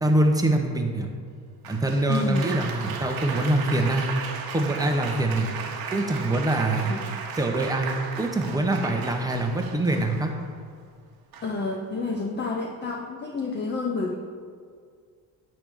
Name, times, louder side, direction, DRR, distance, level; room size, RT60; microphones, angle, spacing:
voice 1, 0.0-1.1 1.7-4.1 4.5-5.5 5.9-7.0 7.4-10.3, right 2 dB, 10° right, 2 dB, 0.8 m, -24 dB
Applause, 1.6-10.5 11.3-11.7, right 5 dB, 65° right, 0.9 m, -36 dB
voice 2, 2.1-2.5 6.8-7.1 11.4-14.1, left 3 dB, 25° left, 1 dB, 0.6 m, -29 dB
8.9 x 3.4 x 6.1 m, 2.1 s
cardioid pair, 115°, 39 cm